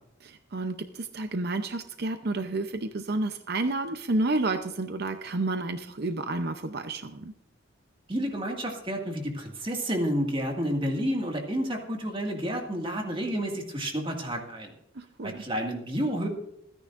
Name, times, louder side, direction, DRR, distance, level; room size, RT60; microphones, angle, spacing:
voice 1, 0.2-7.3 15.0-15.4, right 2 dB, 50° right, 8 dB, 0.7 m, -30 dB
voice 2, 8.1-14.7 15.2-16.3, equal, 25° right, 2 dB, 2.0 m, -30 dB
27.0 x 10.0 x 2.6 m, 0.84 s
head